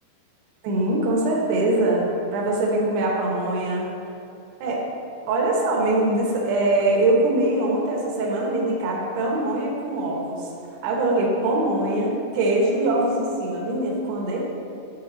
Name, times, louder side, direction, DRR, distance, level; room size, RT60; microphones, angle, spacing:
voice 1, 0.6-2.0 2.3-3.9 4.6-4.8 5.3-10.5 10.8-14.4, right 2 dB, 75° right, -2 dB, 2.9 m, -22 dB
7.4 x 3.5 x 6.1 m, 2.8 s
omnidirectional pair, 4.9 m